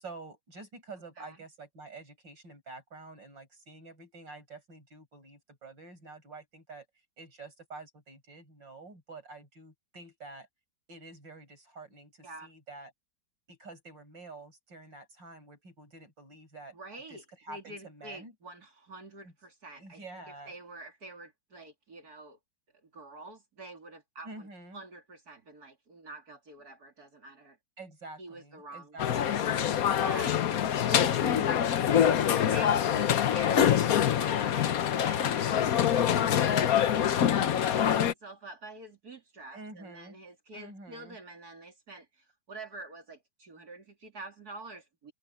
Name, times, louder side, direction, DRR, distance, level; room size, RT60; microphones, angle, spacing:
voice 1, 0.0-6.9 7.2-10.5 10.9-12.9 13.5-16.7 17.1-18.3 19.2-19.3 19.8-20.5 24.2-24.8 27.8-29.5 31.2-31.7 39.5-40.2 40.5-41.2, right 2 dB, 90° right, 7.6 m, -48 dB
voice 2, 16.7-20.0 20.3-22.4 22.8-24.5 24.7-27.6 28.2-29.0 29.3-29.5 30.0-31.3 31.9-45.1, right 2 dB, 55° right, 3.5 m, -47 dB
sound 1, 29.0-38.1, left 9 dB, 60° left, 1.2 m, -25 dB
omnidirectional pair, 1.9 m